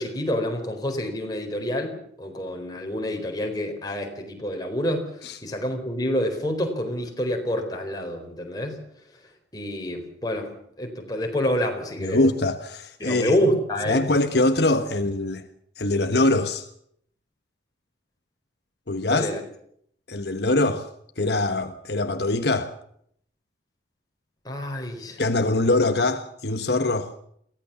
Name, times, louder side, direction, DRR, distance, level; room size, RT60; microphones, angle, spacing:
voice 1, 0.0-5.1 5.4-8.8 9.5-10.5 10.8-12.2 13.0-14.2 19.1-19.4 24.4-25.2, equal, 20° left, 4.4 m, -27 dB
voice 2, 12.0-13.4 13.9-15.4 15.8-16.7 18.9-19.3 20.1-22.7 25.2-27.1, left 2 dB, 65° left, 1.3 m, -23 dB
23.0 x 16.5 x 7.1 m
head